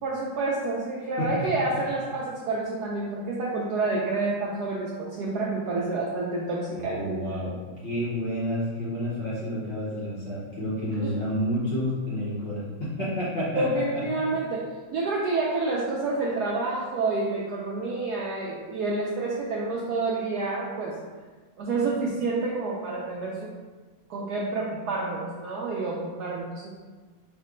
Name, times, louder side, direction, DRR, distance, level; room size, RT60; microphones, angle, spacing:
voice 1, 0.0-7.2 11.0-11.1 13.6-14.6 14.9-21.0 21.6-23.5 24.1-26.7, right 3 dB, 75° right, -4 dB, 0.9 m, -28 dB
voice 2, 6.7-13.8 14.2-14.3, equal, 50° left, -9 dB, 0.9 m, -30 dB
5.2 x 2.1 x 3.7 m, 1.4 s
omnidirectional pair, 2.2 m